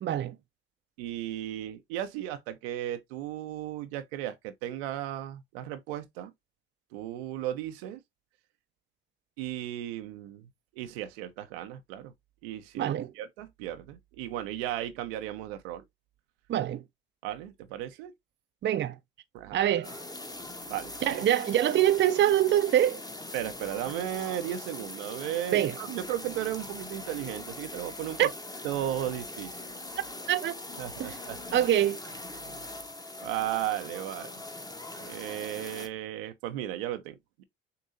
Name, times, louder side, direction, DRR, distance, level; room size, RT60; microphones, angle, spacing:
voice 1, 0.0-0.4 12.8-13.1 16.5-16.8 18.6-19.0 19.5-19.9 21.0-23.0 25.5-25.7 28.2-28.3 30.3-30.5 31.0-31.2 31.5-32.0, right 11 dB, 40° right, 0.5 m, -24 dB
voice 2, 1.0-6.3 6.9-8.0 9.4-10.5 10.8-12.1 12.4-15.8 17.2-18.1 19.3-20.0 20.7-21.2 23.3-28.3 28.6-29.6 30.8-31.6 32.3-32.6 33.2-34.4 35.0-37.4, right 12 dB, 80° right, 0.7 m, -35 dB
sound 1, 19.8-35.9, left 2 dB, 15° left, 0.9 m, -41 dB
6.6 x 2.7 x 2.5 m
hypercardioid pair, 60°, 30 cm